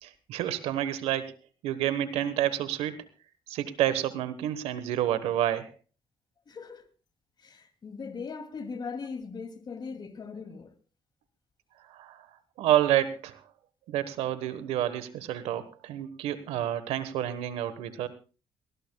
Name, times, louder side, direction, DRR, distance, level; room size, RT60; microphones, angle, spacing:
voice 1, 0.0-1.3 1.6-3.0 3.5-5.7 11.9-12.2 12.6-13.3 13.9-18.1, right 12 dB, 90° right, 1.2 m, -29 dB
voice 2, 6.5-6.9 7.4-10.7, left 5 dB, 45° left, 2.5 m, -39 dB
19.5 x 18.5 x 2.3 m
cardioid pair, 70°, 10 cm